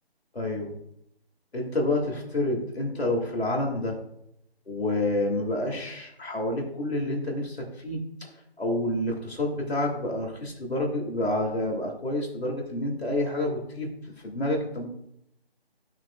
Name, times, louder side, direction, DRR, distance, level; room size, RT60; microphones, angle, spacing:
voice 1, 0.3-0.7 1.5-4.0 4.7-8.0 8.6-14.9, left 1 dB, 80° left, -1 dB, 2.4 m, -28 dB
13.5 x 5.8 x 2.4 m, 0.78 s
figure-of-eight pair, 165°, 31 cm